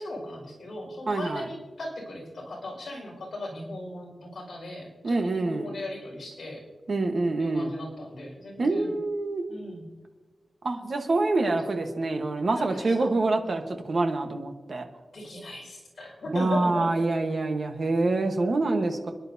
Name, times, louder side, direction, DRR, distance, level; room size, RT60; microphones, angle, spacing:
voice 1, 0.0-6.6 7.4-8.9 9.5-9.9 11.4-11.8 12.5-13.1 13.4-13.6 15.1-17.1, left 1 dB, 50° left, -2 dB, 5.0 m, -38 dB
voice 2, 1.1-1.5 5.0-5.7 6.9-7.7 8.6-9.4 10.6-14.8 16.3-19.1, right 2 dB, 45° right, 5 dB, 1.1 m, -26 dB
30.0 x 10.5 x 2.7 m, 1.3 s
wide cardioid pair, 180°, 0 cm